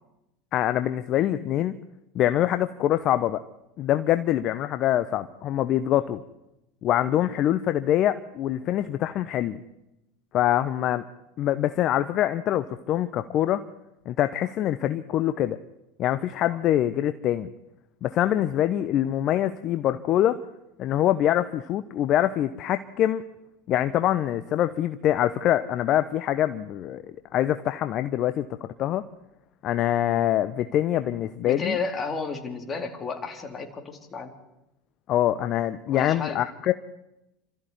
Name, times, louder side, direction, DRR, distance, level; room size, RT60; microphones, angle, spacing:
voice 1, 0.5-1.7 2.1-3.4 3.8-6.2 6.8-9.6 10.3-11.0 11.4-13.6 14.1-15.6 16.0-17.5 18.0-20.4 20.8-23.2 23.7-27.0 27.3-29.0 29.6-31.8 35.1-36.7, left 12 dB, 50° left, 12 dB, 0.9 m, -24 dB
voice 2, 31.4-34.3 35.9-36.4, left 4 dB, 30° left, 5 dB, 3.7 m, -32 dB
27.5 x 14.0 x 9.5 m, 0.92 s
hypercardioid pair, 90°, 0 cm